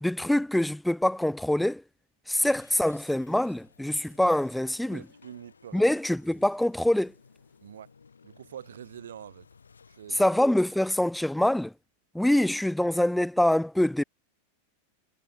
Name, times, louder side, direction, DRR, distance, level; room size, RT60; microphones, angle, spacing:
voice 1, 0.0-1.8 2.3-5.0 5.7-7.1 10.1-11.7 12.1-14.0, left 1 dB, 5° left, 0.4 m, -25 dB
sound 1, 2.3-11.5, left 5 dB, 75° left, 7.5 m, -58 dB
voice 2, 4.9-5.9 7.6-7.9 8.2-9.5 9.9-10.2, right 9 dB, 65° right, 3.5 m, -45 dB
figure-of-eight pair, 90°, 0 cm